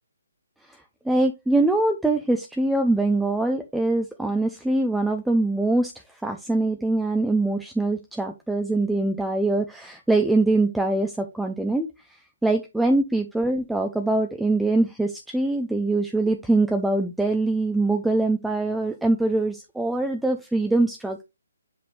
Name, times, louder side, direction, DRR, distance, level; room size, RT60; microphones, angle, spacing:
voice 1, 1.1-5.9 6.2-11.9 12.4-21.2, right 2 dB, ahead, 4 dB, 0.5 m, -23 dB
7.5 x 4.2 x 3.2 m, 0.23 s
figure-of-eight pair, 135°, 0 cm